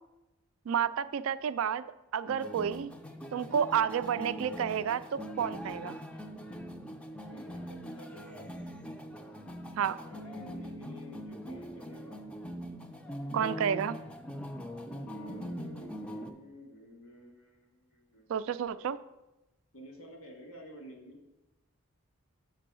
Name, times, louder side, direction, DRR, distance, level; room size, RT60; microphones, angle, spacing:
voice 1, 0.7-1.8 2.1-2.9 3.3-6.0 9.8-10.0 13.3-14.0 18.3-19.0, right 8 dB, 70° right, 14 dB, 0.3 m, -30 dB
sound 1, 2.3-16.3, equal, 5° left, 0.4 m, -42 dB
voice 2, 7.2-8.6 9.9-12.3 14.8-18.9 19.7-21.2, equal, 90° left, 0 dB, 1.9 m, -51 dB
6.8 x 4.6 x 6.1 m, 0.98 s
head